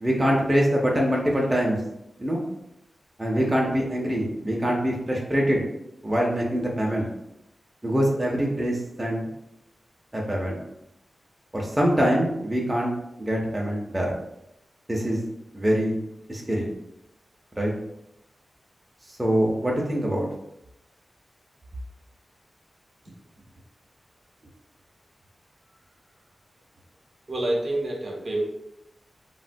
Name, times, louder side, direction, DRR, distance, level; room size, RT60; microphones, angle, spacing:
voice 1, 0.0-1.8 2.2-2.4 3.2-5.6 6.0-7.1 7.8-9.2 10.1-10.6 11.5-12.9 13.2-14.1 14.9-15.2 15.5-16.0 16.3-16.7 17.6-17.7 19.2-20.3, equal, 15° right, -3 dB, 0.5 m, -24 dB
voice 2, 27.3-28.4, right 1 dB, 55° right, -1 dB, 0.6 m, -27 dB
3.4 x 2.1 x 2.5 m, 0.84 s
wide cardioid pair, 115°, 0 cm